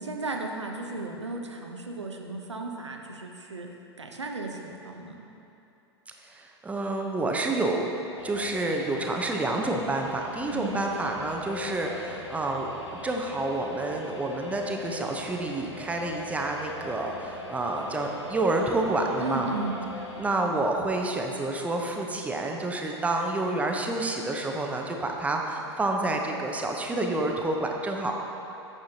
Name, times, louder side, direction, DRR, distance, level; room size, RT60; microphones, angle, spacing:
voice 1, 0.0-5.3 10.5-10.8 19.2-19.8, right 3 dB, 90° right, 2 dB, 0.7 m, -35 dB
voice 2, 6.3-7.9 8.2-12.7 13.0-19.5 20.2-28.1, right 2 dB, 10° right, 1 dB, 0.6 m, -29 dB
sound 1, 8.2-20.3, left 2 dB, 85° left, 0.8 m, -41 dB
8.7 x 6.4 x 2.7 m, 2.8 s
figure-of-eight pair, 100°, 14 cm